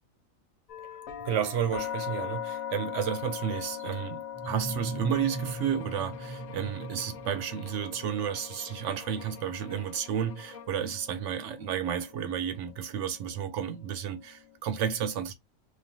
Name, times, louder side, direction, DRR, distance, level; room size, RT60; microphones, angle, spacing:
sound 1, 0.7-14.6, left 10 dB, 90° left, 1.2 m, -41 dB
voice 1, 1.2-15.3, right 8 dB, 70° right, 0.9 m, -32 dB
sound 2, 4.3-8.0, right 3 dB, 15° right, 0.6 m, -38 dB
sound 3, 5.1-10.8, left 5 dB, 70° left, 0.4 m, -50 dB
3.2 x 2.2 x 2.6 m
omnidirectional pair, 1.4 m